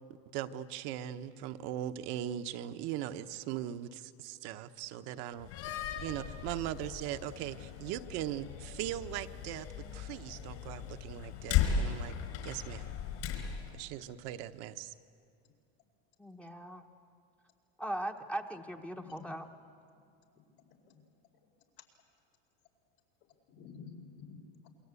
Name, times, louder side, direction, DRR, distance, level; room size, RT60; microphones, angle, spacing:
voice 1, 0.3-5.5 6.0-12.1 12.4-12.9 13.7-14.9, right 11 dB, 60° right, 10 dB, 1.1 m, -39 dB
Slam, 5.4-13.8, left 8 dB, 60° left, 4.5 m, -37 dB
voice 2, 16.2-16.9 17.8-19.5, right 1 dB, 5° left, 3 dB, 1.0 m, -39 dB
voice 3, 18.9-19.3 20.5-21.0 23.6-24.4 24.6-24.7, left 6 dB, 75° left, 2 dB, 4.7 m, -51 dB
28.0 x 23.0 x 8.4 m, 2.5 s
supercardioid pair, 135°, 30 cm